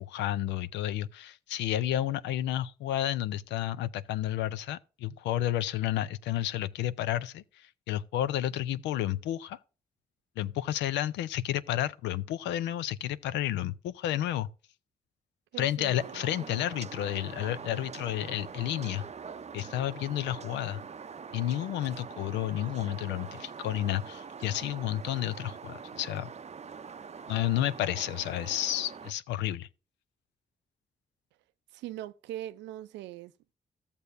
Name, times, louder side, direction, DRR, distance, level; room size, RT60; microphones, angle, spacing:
voice 1, 0.0-9.6 10.4-14.5 15.6-19.0 19.5-20.8 21.3-26.3 27.3-29.7, left 12 dB, 90° left, 0.5 m, -31 dB
voice 2, 15.5-16.6 31.7-33.3, right 13 dB, 90° right, 0.5 m, -41 dB
sound 1, 16.0-29.1, right 6 dB, 40° right, 0.5 m, -44 dB
14.0 x 6.8 x 2.6 m
supercardioid pair, 40°, 18 cm